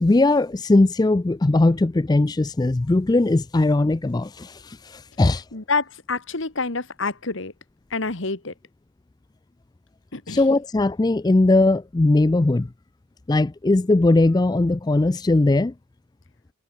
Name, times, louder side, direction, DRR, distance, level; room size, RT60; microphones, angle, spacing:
voice 1, 0.0-5.4 10.3-12.7 13.3-15.7, left 2 dB, 20° left, 0.3 m, -19 dB
voice 2, 5.5-7.5 7.9-8.5 10.1-10.4, left 3 dB, 60° left, 1.7 m, -27 dB
head